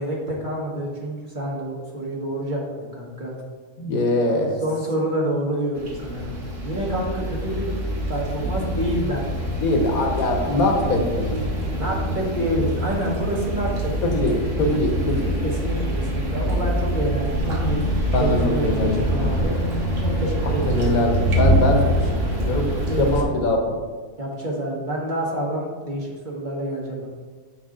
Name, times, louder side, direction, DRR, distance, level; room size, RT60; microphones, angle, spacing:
voice 1, 0.0-3.4 4.6-6.3 6.6-7.7 8.1-9.5 11.6-14.3 15.4-18.6 18.9-19.5 20.0-21.1 21.7-22.0 22.6-23.4 24.2-27.1, right 1 dB, 35° right, -3 dB, 1.3 m, -28 dB
voice 2, 3.8-4.6 9.6-11.4 14.0-15.4 18.1-19.5 20.4-21.9 22.3-22.6 23.0-23.7, left 1 dB, 90° left, 2 dB, 1.5 m, -22 dB
sound 1, 5.8-23.2, equal, 65° right, 1.5 m, -25 dB
7.9 x 4.7 x 3.8 m, 1.5 s
omnidirectional pair, 1.5 m